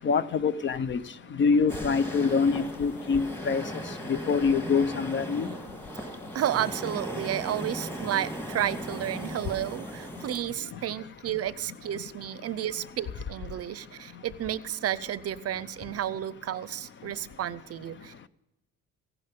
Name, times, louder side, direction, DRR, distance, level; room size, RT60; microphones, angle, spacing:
voice 1, 0.0-1.0 1.4-3.6 4.1-5.5, left 5 dB, 35° left, 16 dB, 0.5 m, -25 dB
sound 1, 1.7-10.4, equal, 5° left, 1.8 m, -37 dB
voice 2, 6.3-18.3, right 11 dB, 50° right, 17 dB, 0.6 m, -32 dB
15.5 x 11.0 x 5.3 m, 1.0 s
cardioid pair, 125°, 32 cm